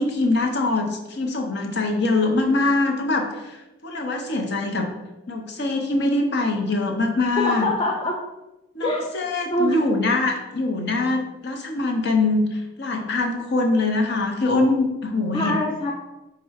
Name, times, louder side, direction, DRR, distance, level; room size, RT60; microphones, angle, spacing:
voice 1, 0.0-4.9 5.3-7.7 8.7-15.6, left 2 dB, 55° left, 3 dB, 0.7 m, -23 dB
voice 2, 7.4-8.2 8.8-9.1 9.5-9.8 15.3-15.9, left 1 dB, 25° left, 0 dB, 0.3 m, -23 dB
3.6 x 3.2 x 4.6 m, 1.0 s
head